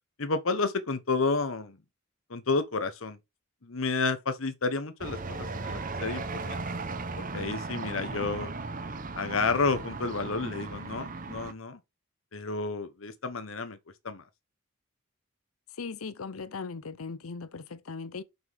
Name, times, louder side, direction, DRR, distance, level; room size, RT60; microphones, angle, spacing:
voice 1, 0.2-1.8 2.3-3.2 3.6-6.6 7.2-8.5 9.1-11.8 12.3-13.8 14.0-14.2, left 4 dB, 75° left, 1.1 m, -30 dB
sound 1, 5.0-11.5, right 3 dB, 40° right, 0.8 m, -36 dB
voice 2, 15.7-18.2, left 4 dB, 90° left, 0.7 m, -38 dB
6.0 x 5.8 x 3.5 m
head